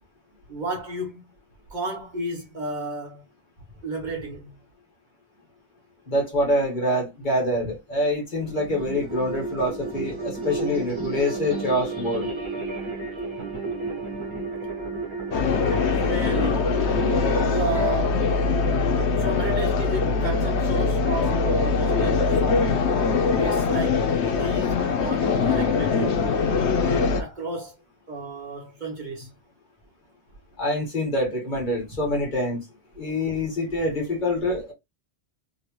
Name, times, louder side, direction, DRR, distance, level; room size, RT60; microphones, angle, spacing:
voice 1, 0.5-1.3 1.7-3.2 3.8-4.5 15.8-16.7 17.5-18.3 19.2-22.9 23.3-26.3 26.9-27.8 28.1-29.3, right 2 dB, 45° right, 1.0 m, -32 dB
voice 2, 6.1-12.3 30.6-32.6 33.0-34.7, left 1 dB, 45° left, 1.5 m, -25 dB
sound 1, 8.4-17.9, right 3 dB, 25° right, 1.2 m, -32 dB
sound 2, 15.3-27.2, left 4 dB, 85° left, 1.0 m, -22 dB
3.2 x 2.9 x 2.9 m
omnidirectional pair, 1.1 m